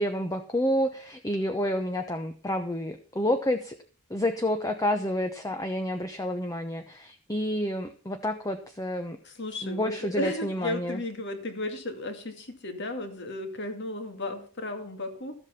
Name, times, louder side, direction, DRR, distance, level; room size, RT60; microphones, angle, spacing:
voice 1, 0.0-3.7 4.1-9.2 9.6-11.0, equal, 15° left, 6 dB, 0.9 m, -29 dB
voice 2, 9.2-15.4, left 2 dB, 55° left, 6 dB, 2.3 m, -34 dB
13.5 x 8.1 x 5.8 m, 0.42 s
head